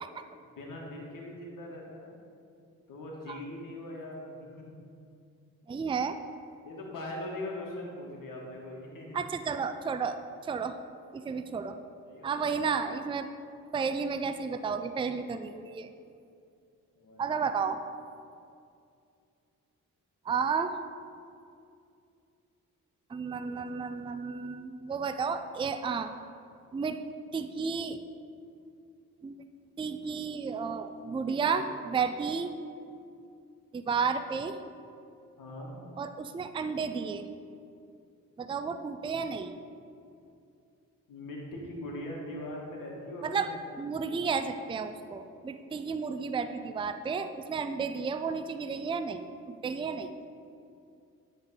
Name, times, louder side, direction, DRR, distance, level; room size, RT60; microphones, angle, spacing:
voice 1, 0.5-2.2 2.9-4.7 6.6-9.2 12.0-12.5 17.0-17.4 31.4-31.5 35.4-35.8 41.1-44.2, left 1 dB, 70° left, -1 dB, 1.8 m, -41 dB
voice 2, 5.7-6.2 9.1-10.8 11.1-11.8 12.2-13.3 13.7-15.9 17.2-17.8 20.3-20.7 23.1-26.1 26.7-27.0 27.3-28.0 29.2-29.4 29.8-32.5 33.7-34.6 36.0-37.3 38.4-39.6 43.2-43.5 43.8-50.1, right 5 dB, 15° right, 9 dB, 0.4 m, -32 dB
9.8 x 3.9 x 5.5 m, 2.5 s
supercardioid pair, 60°, 34 cm